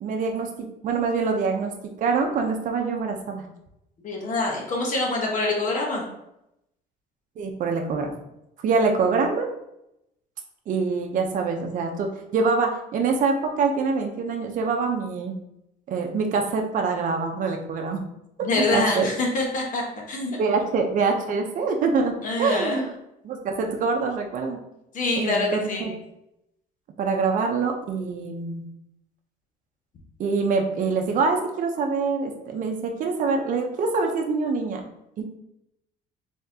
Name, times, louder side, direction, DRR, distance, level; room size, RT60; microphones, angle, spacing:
voice 1, 0.0-0.5 0.8-1.7 2.0-3.5 7.4-8.1 8.6-9.5 10.7-15.3 15.9-18.0 18.6-19.1 20.4-22.1 22.4-22.9 23.2-24.6 25.2-25.9 27.0-28.7 30.2-34.8 35.2-35.3, right 4 dB, 50° right, 2 dB, 0.6 m, -25 dB
voice 2, 4.0-6.0 18.4-19.8 20.1-20.4 22.2-22.9 24.9-25.9, left 2 dB, 50° left, -1 dB, 1.0 m, -25 dB
3.7 x 3.4 x 2.7 m, 0.84 s
cardioid pair, 110°, 17 cm